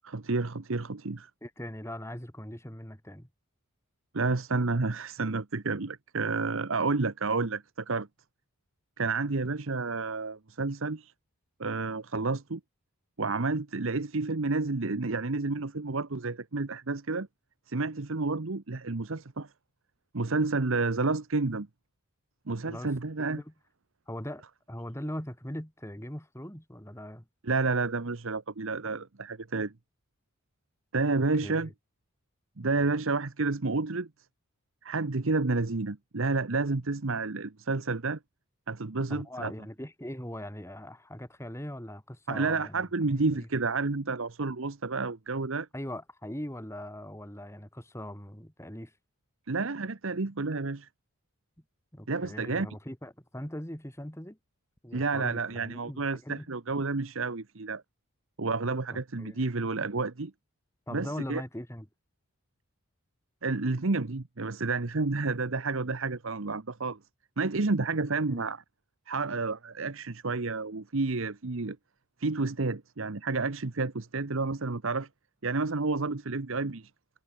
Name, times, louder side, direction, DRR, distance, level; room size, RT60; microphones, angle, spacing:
voice 1, 0.0-1.3 4.1-8.1 9.0-11.1 11.6-12.6 13.2-17.3 17.7-19.5 20.1-21.7 22.5-23.4 27.4-29.7 30.9-31.7 32.6-34.1 34.8-38.2 38.7-39.5 42.3-45.7 49.5-50.9 52.1-52.8 54.9-57.8 58.4-60.3 60.9-61.4 63.4-67.0 67.4-68.6 69.1-71.8 72.2-75.1 75.4-76.9, right 3 dB, 65° right, 1.0 m, -30 dB
voice 2, 1.4-3.3 22.6-22.9 23.2-23.5 24.1-27.2 31.2-31.7 39.1-43.5 45.7-48.9 51.9-54.4 54.8-56.5 58.9-59.4 60.9-61.9 68.3-68.5, equal, 10° left, 3.2 m, -40 dB
head